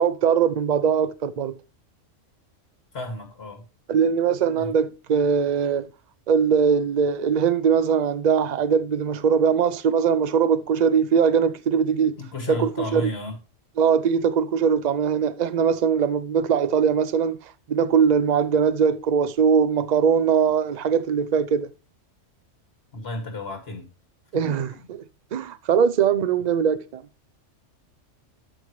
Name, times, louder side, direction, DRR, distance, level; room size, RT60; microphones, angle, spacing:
voice 1, 0.0-1.5 3.9-5.9 6.3-12.2 12.5-13.1 13.8-21.7 24.3-24.7 25.3-27.0, right 7 dB, 45° right, 0.6 m, -21 dB
voice 2, 2.9-3.6 4.6-4.7 12.2-13.4 22.9-23.9 24.3-24.9, left 2 dB, 55° left, 2.3 m, -33 dB
13.0 x 5.5 x 3.1 m
omnidirectional pair, 1.3 m